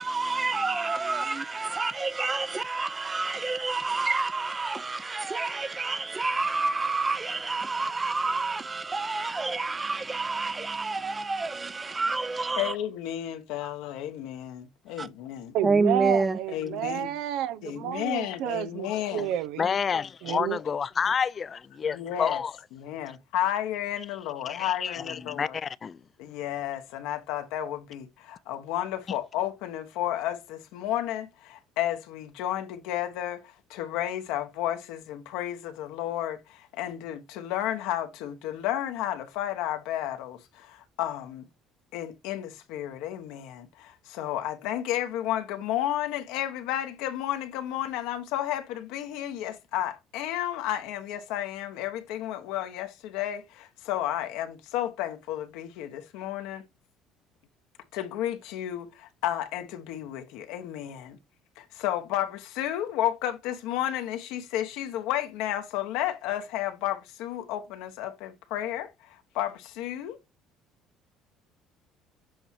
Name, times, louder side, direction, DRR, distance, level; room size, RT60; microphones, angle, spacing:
voice 1, 0.0-12.7 15.0-15.1 15.6-16.4, right 3 dB, 25° right, 0.6 m, -28 dB
voice 2, 12.6-15.6 16.5-17.1 17.6-19.3 21.9-22.4 22.7-25.6 26.2-41.5 41.9-56.6 57.9-61.2 61.6-70.2, left 12 dB, 80° left, 1.1 m, -32 dB
voice 3, 15.5-19.6 20.2-20.6, right 11 dB, 80° right, 0.5 m, -30 dB
voice 4, 19.6-22.5 24.5-26.0, left 6 dB, 40° left, 0.4 m, -29 dB
7.8 x 2.9 x 4.4 m
supercardioid pair, 90°, 0 cm